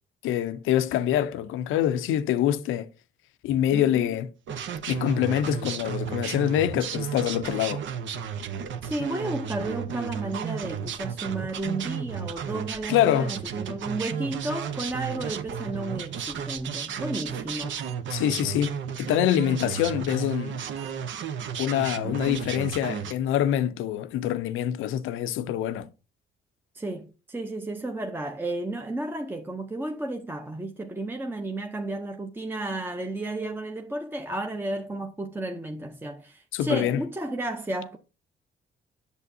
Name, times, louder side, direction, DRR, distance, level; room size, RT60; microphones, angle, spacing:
voice 1, 0.2-2.9 3.4-4.3 4.9-7.8 12.9-13.4 18.1-20.6 21.6-25.9 36.5-37.0, left 11 dB, 90° left, 0.6 m, -25 dB
voice 2, 3.7-4.1 8.8-17.8 22.0-22.4 26.7-38.0, right 2 dB, 10° right, 0.7 m, -33 dB
sound 1, 4.5-23.1, right 7 dB, 70° right, 0.9 m, -33 dB
sound 2, 17.8-18.2 18.7-18.8 20.2-20.4 20.7-20.9 21.3-21.4 21.8-21.9 22.3-22.4 22.6-23.0, right 8 dB, 35° right, 1.6 m, -47 dB
8.1 x 7.0 x 2.7 m
cardioid pair, 90°, 20 cm